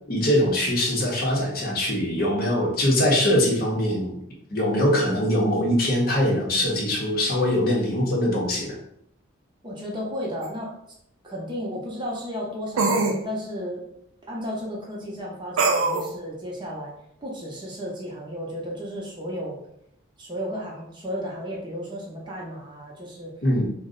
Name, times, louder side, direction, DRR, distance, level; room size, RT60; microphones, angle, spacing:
voice 1, 0.1-4.2 4.5-8.8 23.4-23.7, left 1 dB, 45° left, -2 dB, 0.7 m, -22 dB
voice 2, 9.6-10.7 11.2-13.8 14.3-16.9 17.2-19.6 20.2-23.3, equal, 25° right, -3 dB, 0.6 m, -33 dB
sound 1, 10.4-10.5 12.8-13.2 15.6-16.1, right 3 dB, 85° right, 0.4 m, -22 dB
2.5 x 2.0 x 3.7 m, 0.73 s
head